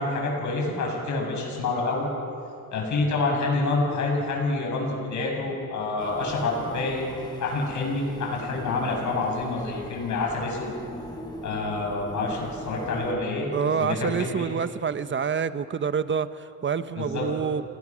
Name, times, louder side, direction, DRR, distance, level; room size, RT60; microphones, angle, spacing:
voice 1, 0.0-2.1 2.7-7.1 7.4-10.7 11.4-13.5 13.8-14.5 17.0-17.2, left 3 dB, 70° left, 0 dB, 7.7 m, -27 dB
sound 1, 6.0-13.1, left 1 dB, 15° left, 5.0 m, -40 dB
voice 2, 13.5-17.6, right 6 dB, 40° right, 12 dB, 0.9 m, -27 dB
29.5 x 20.5 x 6.3 m, 2.6 s
cardioid pair, 90°, 30 cm